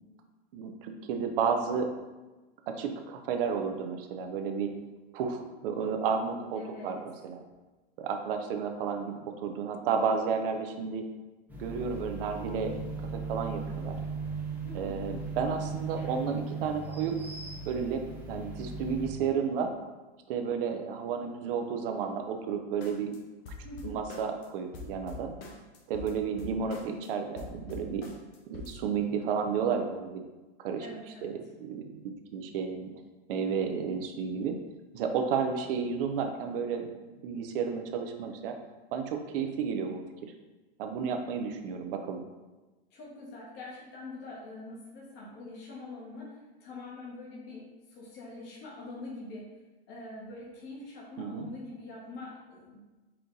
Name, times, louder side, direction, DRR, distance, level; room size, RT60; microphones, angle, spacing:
voice 1, 0.5-1.9 2.7-4.7 5.1-7.0 7.2-7.4 8.0-11.0 11.6-14.0 14.7-17.1 17.7-18.0 18.3-19.7 20.3-23.1 23.8-25.3 25.9-28.0 28.5-30.2 30.6-30.9 31.2-31.3 31.7-32.9 33.3-34.5 34.9-36.9 37.2-38.5 38.9-40.3 40.8-42.2 51.2-51.5, right 6 dB, 60° right, 5 dB, 0.6 m, -32 dB
voice 2, 6.6-7.0 14.6-15.0 23.6-24.0 30.8-31.3 42.9-49.5 49.9-52.8, left 2 dB, 35° left, -4 dB, 1.1 m, -44 dB
sound 1, 11.5-19.1, right 4 dB, 5° right, 0.4 m, -37 dB
sound 2, 22.8-23.2 23.4-24.5 24.7-27.1 27.4-28.8, left 3 dB, 70° left, 0.9 m, -44 dB
4.3 x 2.5 x 3.8 m, 1.2 s
hypercardioid pair, 130°, 32 cm